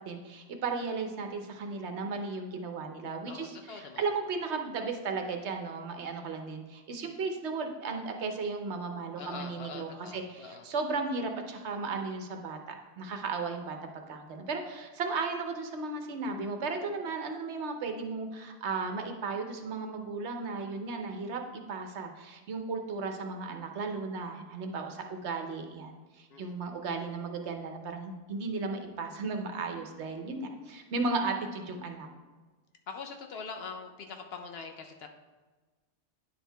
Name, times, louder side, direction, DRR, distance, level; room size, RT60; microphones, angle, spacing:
voice 1, 0.1-13.8 14.1-21.4 21.7-32.1, right 4 dB, 70° right, 5 dB, 1.0 m, -35 dB
voice 2, 3.2-4.1 9.2-10.7 26.3-26.6 32.9-35.1, left 5 dB, 60° left, 4 dB, 0.8 m, -43 dB
9.8 x 4.6 x 3.3 m, 1.3 s
omnidirectional pair, 1.2 m